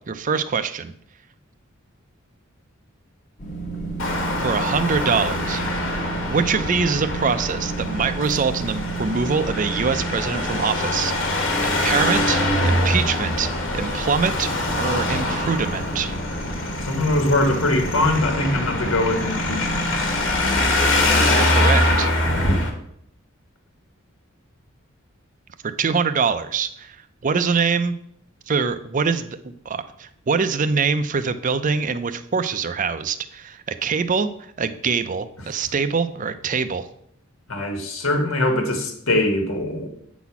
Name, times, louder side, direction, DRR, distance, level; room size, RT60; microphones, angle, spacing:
voice 1, 0.1-0.9 4.4-5.6 5.9-16.1 21.3-22.1 25.8-27.0 27.2-27.9 28.5-36.9, right 5 dB, 40° right, 12 dB, 0.5 m, -24 dB
sound 1, 3.4-21.4, right 2 dB, 35° left, 1.1 m, -31 dB
Traffic noise roadway noise, 4.0-22.7, left 1 dB, 65° left, 1.3 m, -24 dB
voice 2, 16.8-20.2 37.5-39.9, left 1 dB, 85° left, 3 dB, 1.4 m, -22 dB
8.3 x 4.1 x 5.8 m, 0.70 s
head